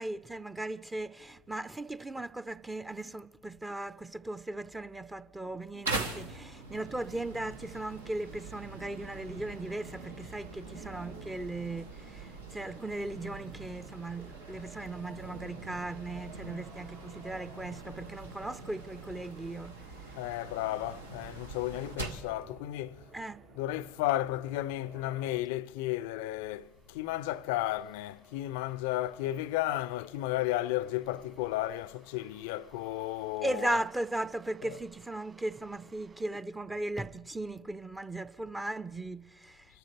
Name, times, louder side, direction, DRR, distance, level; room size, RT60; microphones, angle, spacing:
voice 1, 0.0-19.8 23.1-23.4 33.4-39.7, right 2 dB, 15° right, 0.5 m, -37 dB
sound 1, 5.7-25.4, right 4 dB, 65° right, 1.6 m, -56 dB
sound 2, 5.8-22.3, right 3 dB, 85° right, 1.0 m, -43 dB
voice 2, 20.1-23.0 23.5-33.8 34.6-34.8, left 15 dB, 70° left, 0.3 m, -33 dB
sound 3, 26.4-36.3, right 5 dB, 40° right, 2.5 m, -62 dB
25.5 x 13.5 x 3.3 m
figure-of-eight pair, 60°, 0 cm